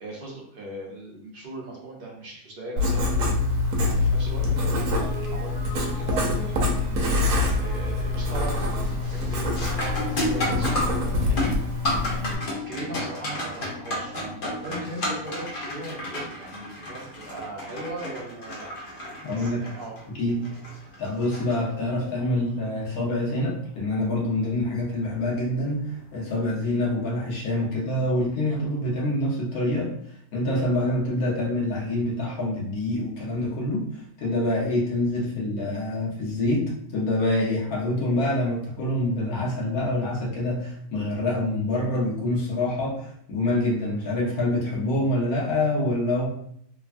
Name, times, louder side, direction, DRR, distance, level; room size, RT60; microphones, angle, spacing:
voice 1, 0.0-3.3 3.8-6.4 7.0-11.4 12.1-18.7 19.3-19.9, right 2 dB, 50° right, -2 dB, 0.7 m, -39 dB
Writing, 2.8-12.4, left 2 dB, 70° right, 1.0 m, -25 dB
sound 1, 4.9-14.7, right 2 dB, 15° right, 0.5 m, -42 dB
sound 2, 7.0-7.4 7.8-8.2 8.6-22.1 24.6-24.7 25.5-25.8, left 1 dB, 50° left, 0.6 m, -32 dB
voice 2, 19.2-19.6 20.1-20.4 21.0-29.9 30.3-33.9 34.2-46.3, left 1 dB, 75° left, -3 dB, 1.3 m, -26 dB
3.2 x 2.1 x 2.5 m, 0.68 s
omnidirectional pair, 1.6 m